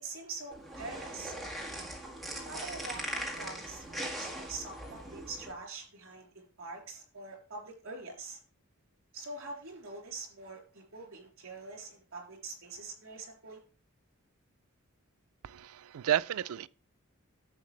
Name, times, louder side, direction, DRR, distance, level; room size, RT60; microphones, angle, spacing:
voice 1, 0.0-1.3 2.3-8.4 9.1-13.6, right 3 dB, 70° right, 3.4 m, -44 dB
sound 1, 0.5-5.5, right 1 dB, ahead, 1.8 m, -40 dB
voice 2, 15.4-16.7, right 10 dB, 85° right, 0.4 m, -31 dB
10.5 x 7.3 x 3.2 m
head